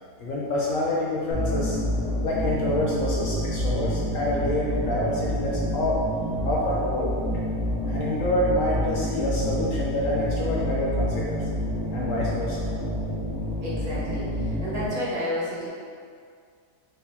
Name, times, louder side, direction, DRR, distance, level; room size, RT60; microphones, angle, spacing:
voice 1, 0.2-1.8 2.2-6.0 6.4-7.2 7.9-11.4 11.9-12.6, left 1 dB, 65° left, -4 dB, 0.9 m, -27 dB
sound 1, 1.3-14.9, equal, 65° right, 1.9 m, -28 dB
voice 2, 13.6-15.7, left 1 dB, 30° right, -9 dB, 0.9 m, -31 dB
5.5 x 2.3 x 3.5 m, 2.2 s
omnidirectional pair, 1.8 m